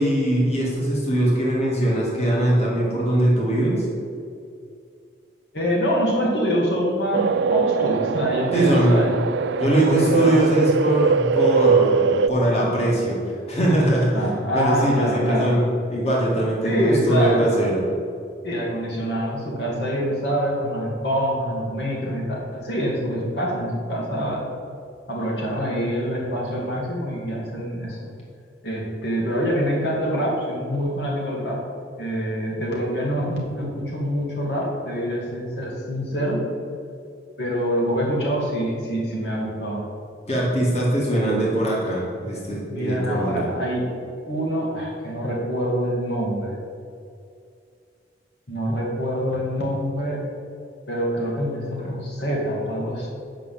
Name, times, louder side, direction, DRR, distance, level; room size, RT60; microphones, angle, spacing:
voice 1, 0.0-3.9 8.5-9.1 9.6-13.2 13.5-14.3 14.5-15.6 15.9-17.8 40.3-43.5 51.8-51.9, right 1 dB, 35° left, -4 dB, 2.1 m, -21 dB
voice 2, 5.5-9.1 9.7-10.6 14.1-15.5 16.6-17.4 18.4-24.4 25.1-28.1 28.6-31.6 32.0-36.4 37.4-39.9 42.7-43.9 44.3-46.6 48.5-50.2 50.9-53.1, equal, 70° left, -3 dB, 2.2 m, -25 dB
sound 1, 7.1-12.3, right 5 dB, 75° right, 0.3 m, -22 dB
8.0 x 5.9 x 7.6 m, 2.4 s
head